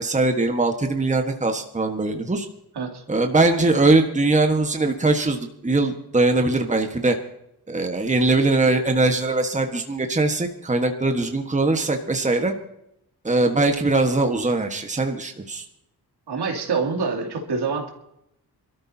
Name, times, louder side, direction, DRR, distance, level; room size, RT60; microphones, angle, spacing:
voice 1, 0.0-2.5 3.1-7.2 7.7-12.5 13.2-15.6, right 2 dB, 20° right, 4 dB, 1.4 m, -21 dB
voice 2, 16.3-17.9, right 4 dB, 75° right, 1 dB, 2.8 m, -26 dB
24.5 x 13.0 x 2.8 m, 0.79 s
cardioid pair, 95°, 40 cm